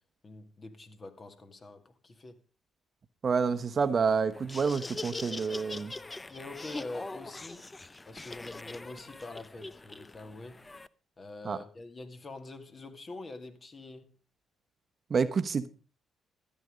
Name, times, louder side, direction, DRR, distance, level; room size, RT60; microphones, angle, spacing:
voice 1, 0.2-2.4 5.7-6.0 6.3-7.7 8.0-10.6 11.2-14.1, left 2 dB, 40° left, 2.3 m, -45 dB
voice 2, 3.2-5.9 11.4-11.6 15.1-15.7, right 5 dB, 50° right, 1.0 m, -28 dB
Laughter, 4.3-10.9, left 2 dB, 25° left, 0.6 m, -42 dB
14.0 x 9.2 x 5.1 m
supercardioid pair, 55°, 0 cm